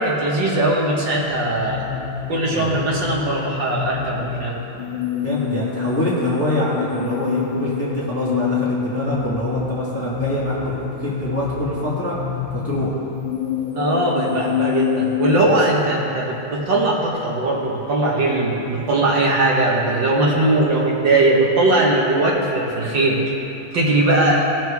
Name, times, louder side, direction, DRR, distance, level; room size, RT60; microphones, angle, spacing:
voice 1, 0.0-1.9 2.3-4.5 13.7-23.2 23.7-24.5, right 2 dB, 60° right, -3 dB, 1.9 m, -19 dB
sound 1, 1.3-15.5, left 8 dB, 75° left, 1.4 m, -27 dB
voice 2, 5.2-10.7 11.0-12.2 12.5-13.0, equal, 10° left, -6 dB, 1.1 m, -24 dB
17.0 x 6.1 x 3.5 m, 2.9 s
omnidirectional pair, 2.3 m